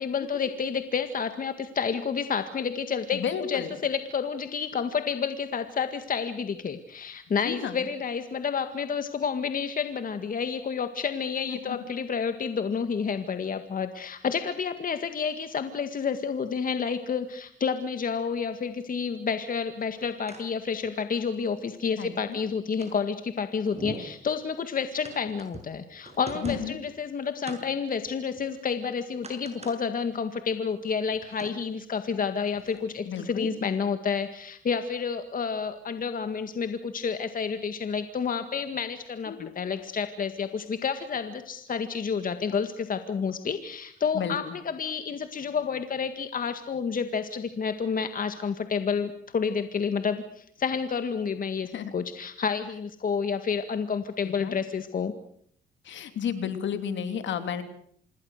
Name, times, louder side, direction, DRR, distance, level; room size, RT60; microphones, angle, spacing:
voice 1, 0.0-55.1, left 6 dB, 45° left, 9 dB, 1.9 m, -30 dB
voice 2, 3.1-3.7 7.4-7.8 11.7-11.8 22.0-22.4 26.4-26.8 33.1-33.5 39.3-39.5 44.1-44.5 51.7-51.9 54.2-54.6 55.8-57.6, left 8 dB, 70° left, 9 dB, 3.1 m, -32 dB
sound 1, 19.8-20.4 20.8-20.9 21.3-21.4 22.0-22.9 23.4-23.5 23.7-24.2 25.0-25.7 26.0-26.9 27.4-27.6 28.0-28.7 29.1-29.8 30.2-30.3 30.7-31.5 32.5-32.8 33.2-33.3, right 3 dB, 35° right, 7.2 m, -43 dB
26.5 x 22.0 x 6.6 m, 0.63 s
cardioid pair, 90°, 20 cm